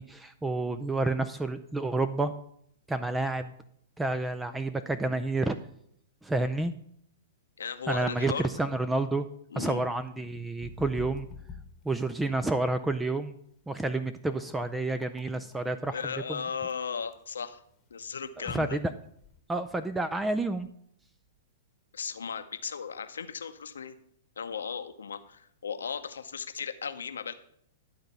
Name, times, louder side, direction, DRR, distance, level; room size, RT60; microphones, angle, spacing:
voice 1, 0.0-2.3 2.9-3.5 4.0-5.6 6.2-6.7 7.9-9.3 9.6-11.3 11.9-13.4 13.7-16.0 16.3-16.4 18.4-18.8 19.5-20.7, right 2 dB, 10° right, 10 dB, 0.4 m, -29 dB
voice 2, 7.6-8.5 9.5-9.8 15.9-17.6 17.9-18.8 21.9-23.9 24.4-27.3, left 6 dB, 80° left, 9 dB, 0.8 m, -36 dB
sound 1, 10.6-19.4, left 5 dB, 25° left, 1.2 m, -47 dB
11.5 x 3.9 x 6.8 m, 0.68 s
hypercardioid pair, 115°, 0 cm